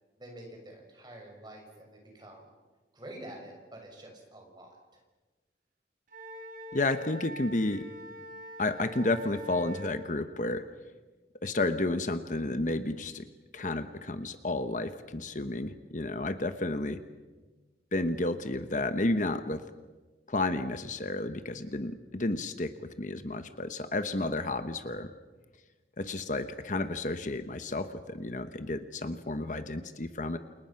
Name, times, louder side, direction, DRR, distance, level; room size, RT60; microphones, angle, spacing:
voice 1, 0.2-2.5 2.9-5.0, right 1 dB, 25° right, 1 dB, 6.2 m, -48 dB
Wind instrument woodwind instrument, 6.1-10.0, left 1 dB, 50° right, 4.2 m, -44 dB
voice 2, 6.7-7.9 8.6-10.6 11.4-13.3 13.5-17.0 17.9-19.6 20.3-25.1 26.0-30.4, left 2 dB, 45° left, 9 dB, 1.0 m, -31 dB
29.0 x 29.0 x 5.8 m, 1.3 s
head